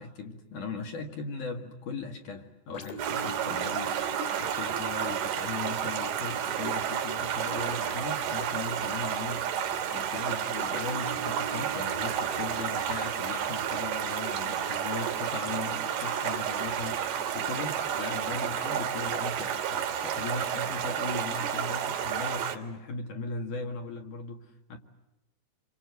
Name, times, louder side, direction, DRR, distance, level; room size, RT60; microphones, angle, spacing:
voice 1, 0.0-24.4 24.7-24.8, left 3 dB, 55° left, 3 dB, 3.0 m, -38 dB
sound 1, 2.7-20.3 20.8-20.9, right 2 dB, 85° left, 5.1 m, -47 dB
Stream, 3.0-22.6, right 8 dB, 70° right, 3.7 m, -31 dB
28.0 x 25.0 x 8.1 m, 0.95 s
omnidirectional pair, 4.9 m